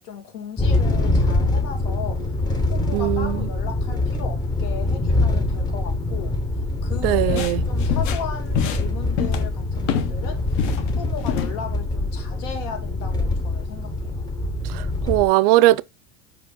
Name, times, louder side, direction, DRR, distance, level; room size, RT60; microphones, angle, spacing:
voice 1, 0.0-2.3 2.7-14.2, left 6 dB, 80° left, 2.1 m, -36 dB
sound 1, 0.6-15.3, left 2 dB, 15° left, 0.7 m, -24 dB
voice 2, 2.9-3.5 7.0-7.6 14.7-15.8, right 17 dB, 75° right, 0.5 m, -19 dB
sound 2, 7.1-10.2 10.5-11.6, left 8 dB, 50° left, 0.8 m, -26 dB
5.0 x 5.0 x 3.7 m
cardioid pair, 170°, 29 cm